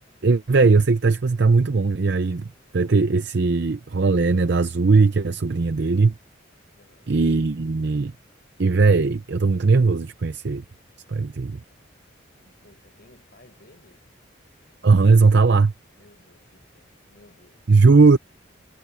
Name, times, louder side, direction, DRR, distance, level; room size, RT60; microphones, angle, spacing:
voice 1, 0.2-2.5 2.7-6.1 7.1-8.1 8.6-10.6 11.1-11.6 14.8-15.7 17.7-18.2, right 4 dB, 55° right, 0.6 m, -18 dB
voice 2, 6.8-7.1 12.4-14.0 16.0-17.6, left 1 dB, 50° left, 6.8 m, -56 dB
head